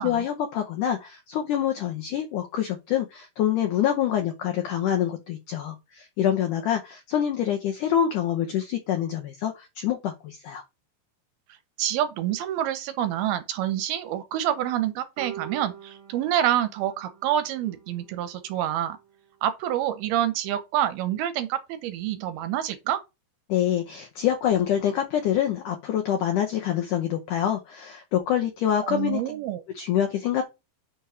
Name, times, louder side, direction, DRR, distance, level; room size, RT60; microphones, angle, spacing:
voice 1, 0.0-10.6 23.5-29.2 29.7-30.4, left 10 dB, 75° left, 1.9 m, -26 dB
voice 2, 11.8-19.0 19.4-23.0 28.8-29.6, right 11 dB, 75° right, 2.5 m, -27 dB
sound 1, 15.2-19.3, right 9 dB, 50° right, 2.7 m, -45 dB
6.5 x 4.6 x 5.6 m
omnidirectional pair, 4.7 m